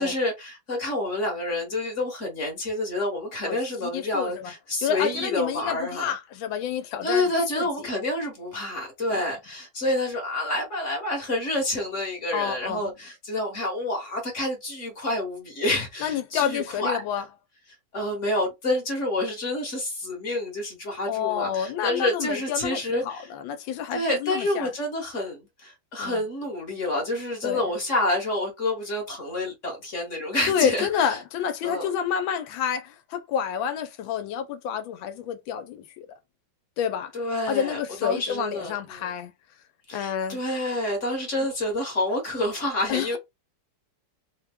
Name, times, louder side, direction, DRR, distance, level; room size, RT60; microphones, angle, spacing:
voice 1, 0.0-6.1 7.0-17.0 17.9-23.3 23.9-31.2 31.6-31.9 37.1-39.1 39.9-43.2, left 1 dB, 45° left, 1.3 m, -28 dB
voice 2, 3.8-4.5 4.8-7.7 9.1-9.2 12.3-12.9 16.0-17.2 21.1-24.7 26.0-26.2 27.4-27.6 30.5-36.1 36.8-37.1 37.5-39.3 39.9-40.4 42.9-43.2, left 8 dB, 85° left, 1.4 m, -29 dB
4.1 x 2.2 x 3.5 m
omnidirectional pair, 2.1 m